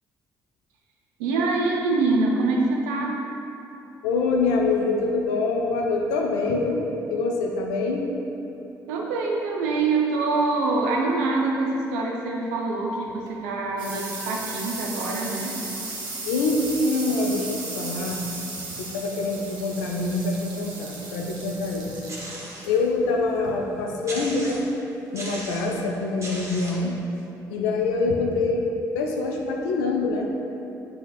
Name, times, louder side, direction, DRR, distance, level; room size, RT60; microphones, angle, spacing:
voice 1, 1.2-3.2 8.9-15.6, right 3 dB, 85° right, -1 dB, 0.5 m, -25 dB
voice 2, 4.0-8.1 16.2-18.3 18.8-21.9 22.7-24.6 25.1-26.9 27.5-28.7 28.9-30.3, left 3 dB, 85° left, 1 dB, 0.4 m, -25 dB
sound 1, 13.1-24.3, right 3 dB, 60° right, 0.9 m, -36 dB
sound 2, 22.1-22.8 23.3-23.4 24.1-24.8 25.2-25.8 26.2-26.9, right 1 dB, 35° right, 1.0 m, -37 dB
6.3 x 2.4 x 2.9 m, 2.9 s
hypercardioid pair, 50°, 9 cm